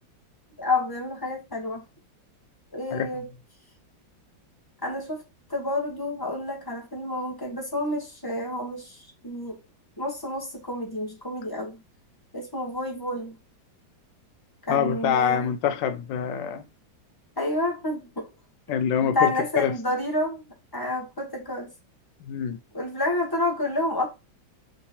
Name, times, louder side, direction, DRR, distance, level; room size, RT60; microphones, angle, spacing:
voice 1, 0.6-1.8 2.7-3.3 4.8-5.2 5.5-9.6 10.0-11.8 12.3-13.3 14.7-15.5 17.4-18.3 19.0-20.4 20.7-21.7 22.7-24.1, left 2 dB, 20° left, 0.6 m, -29 dB
voice 2, 14.7-16.7 18.7-19.7 22.2-22.6, left 8 dB, 80° left, 1.2 m, -25 dB
3.8 x 2.8 x 4.1 m
omnidirectional pair, 2.1 m